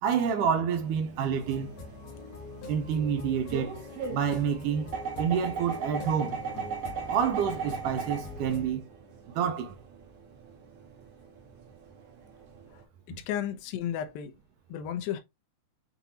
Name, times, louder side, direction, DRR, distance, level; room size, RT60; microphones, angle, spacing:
voice 1, 0.0-1.7 2.7-3.7 4.1-4.9 5.2-6.4 7.1-8.9 9.4-9.8 13.1-13.2, right 7 dB, 80° right, 2.0 m, -28 dB
sound 1, 0.7-12.8, right 5 dB, 60° right, 1.7 m, -39 dB
sound 2, 1.4-8.7, left 3 dB, 60° left, 2.0 m, -44 dB
voice 2, 13.1-14.3 14.7-15.2, left 10 dB, 80° left, 2.5 m, -33 dB
7.1 x 2.6 x 2.8 m
omnidirectional pair, 4.2 m